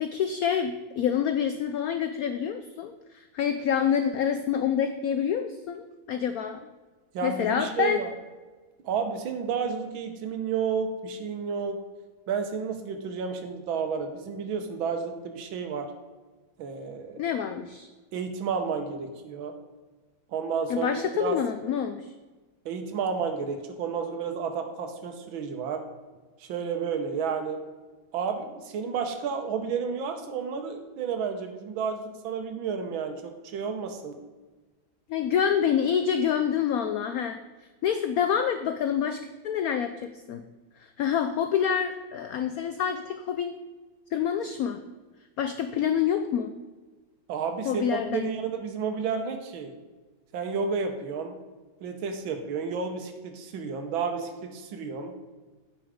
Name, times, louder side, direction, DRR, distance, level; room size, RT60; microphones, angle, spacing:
voice 1, 0.0-6.6 7.2-8.0 17.2-17.9 20.7-22.1 35.1-37.4 37.8-40.4 40.8-43.6 44.1-44.8 45.4-46.5 47.6-48.3, left 8 dB, 90° left, 8 dB, 0.7 m, -27 dB
voice 2, 7.1-8.1 8.8-11.8 12.3-15.9 16.6-17.2 18.1-19.6 20.3-21.4 22.7-25.8 26.4-27.6 28.1-34.1 47.3-49.7 50.3-51.4 51.8-55.1, right 6 dB, 85° right, 5 dB, 1.7 m, -31 dB
8.9 x 6.2 x 5.0 m, 1.3 s
omnidirectional pair, 2.1 m